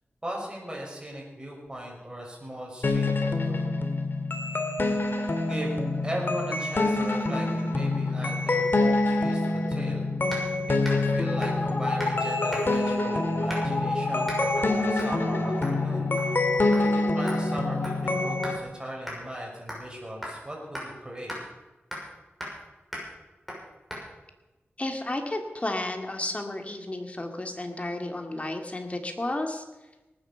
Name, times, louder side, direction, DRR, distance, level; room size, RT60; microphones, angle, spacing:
voice 1, 0.2-3.7 5.5-10.0 10.4-16.1 16.8-21.3, right 1 dB, 20° right, -2 dB, 5.9 m, -37 dB
sound 1, 2.8-18.6, left 2 dB, 55° left, 2.0 m, -26 dB
sound 2, 10.3-10.5 10.8-11.1 11.4-11.6 12.0-12.2 12.5-12.9 13.5-13.8 14.3-14.4 15.0-15.2 15.6-15.8 16.2-16.4 16.7-16.9 17.3-18.6 19.1-19.2 19.7-19.9 20.2-20.4 20.7-20.9 21.3-21.4 21.9-22.1 22.4-22.6 22.9-23.1 23.5-23.6 23.9-24.0, equal, ahead, 6.5 m, -38 dB
voice 2, 24.8-29.6, left 1 dB, 30° left, 4 dB, 2.2 m, -32 dB
19.0 x 9.6 x 6.9 m, 1.1 s
wide cardioid pair, 70°, 4 cm